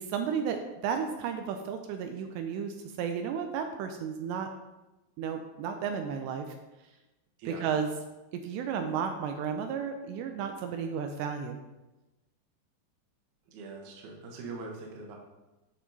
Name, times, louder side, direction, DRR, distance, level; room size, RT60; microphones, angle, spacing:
voice 1, 0.0-4.5 5.2-6.5 7.6-7.9 8.4-11.6, right 7 dB, 85° right, 5 dB, 2.7 m, -33 dB
voice 2, 13.5-15.2, right 3 dB, 65° right, 0 dB, 2.1 m, -42 dB
8.5 x 5.7 x 4.0 m, 1.0 s
omnidirectional pair, 5.1 m